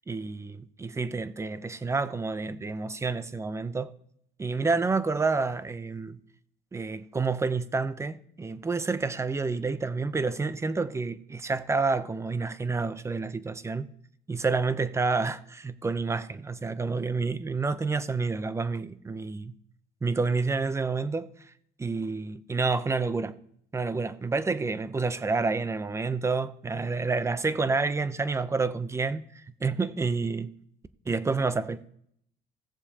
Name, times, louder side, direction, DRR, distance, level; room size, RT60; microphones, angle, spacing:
voice 1, 0.1-3.9 4.4-6.2 6.7-13.9 14.3-19.5 20.0-21.5 21.8-23.4 23.7-30.5 31.1-31.8, right 4 dB, 15° right, 0.6 m, -29 dB
17.0 x 7.1 x 2.8 m
cardioid pair, 110°, 17 cm